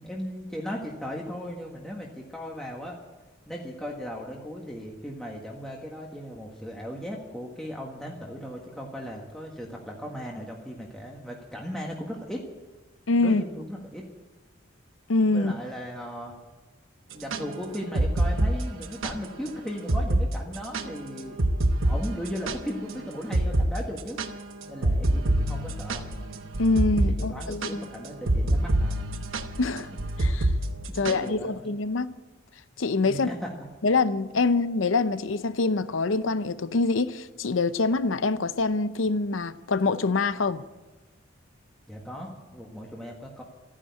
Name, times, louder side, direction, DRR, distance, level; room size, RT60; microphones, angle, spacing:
voice 1, 0.0-3.0 3.5-12.4 13.2-14.1 15.3-16.3 17.1-21.4 21.8-24.2 24.7-26.1 27.1-29.1 29.9-30.0 30.9-31.7 33.1-33.7 41.9-43.4, equal, ahead, 1.6 m, -37 dB
voice 2, 13.1-13.4 15.1-15.5 26.6-27.9 29.6-29.9 30.2-30.5 31.0-32.1 32.8-33.3 33.8-40.6, left 3 dB, 70° left, 0.7 m, -25 dB
sound 1, 17.1-19.2 19.5-19.6 19.9-20.3 20.5-22.9 23.3-23.7 24.0-31.3, right 1 dB, 85° right, 1.0 m, -26 dB
14.0 x 10.0 x 9.5 m
head